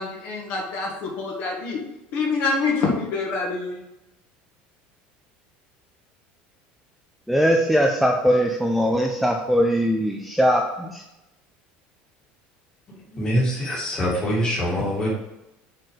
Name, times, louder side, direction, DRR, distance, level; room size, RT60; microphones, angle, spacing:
voice 1, 0.0-1.8 2.1-3.8, left 4 dB, 50° left, 0 dB, 1.7 m, -26 dB
voice 2, 7.3-11.0, equal, ahead, 1 dB, 0.4 m, -20 dB
voice 3, 12.9-15.1, equal, 20° left, -4 dB, 2.1 m, -24 dB
6.5 x 4.2 x 5.0 m, 0.93 s
cardioid pair, 165°, 4 cm